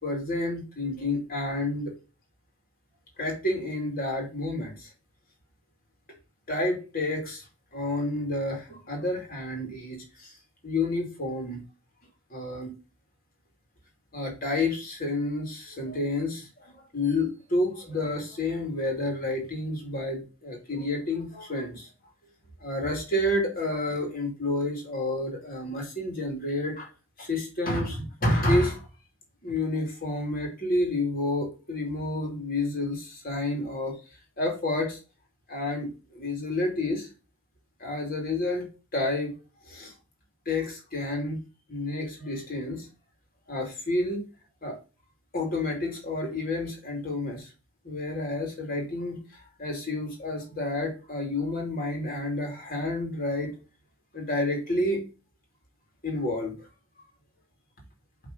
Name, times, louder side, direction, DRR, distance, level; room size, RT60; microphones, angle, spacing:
voice 1, 0.0-1.9 3.2-4.9 6.5-7.4 7.7-10.4 10.6-11.6 12.3-12.7 14.1-21.9 22.6-26.9 27.2-28.9 29.4-33.9 34.4-35.0 35.5-37.1 37.8-38.7 38.9-39.3 39.7-39.9 40.5-41.4 41.7-42.9 43.5-44.2 44.6-44.8 45.3-47.5 47.8-53.5 54.1-55.0 56.0-56.5, left 2 dB, 45° left, 0 dB, 2.7 m, -29 dB
8.1 x 3.7 x 5.1 m, 0.33 s
head